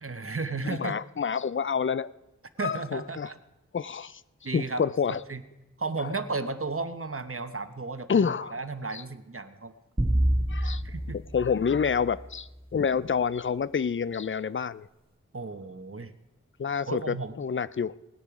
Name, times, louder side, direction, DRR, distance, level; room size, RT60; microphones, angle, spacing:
voice 1, 0.0-1.0 2.6-3.4 4.4-4.8 5.1-5.4 5.8-9.7 10.6-11.2 15.3-16.2 16.9-17.3, right 3 dB, 50° right, 10 dB, 1.0 m, -34 dB
voice 2, 0.6-2.1 2.6-3.3 3.7-4.2 4.5-5.2 6.0-6.1 8.1-8.5 8.9-9.0 10.5-10.8 11.1-14.9 16.6-17.9, left 6 dB, 45° left, 18 dB, 0.4 m, -28 dB
sound 1, 10.0-12.5, right 1 dB, 20° right, 2.2 m, -28 dB
17.5 x 10.0 x 4.9 m, 1.0 s
wide cardioid pair, 55°, 29 cm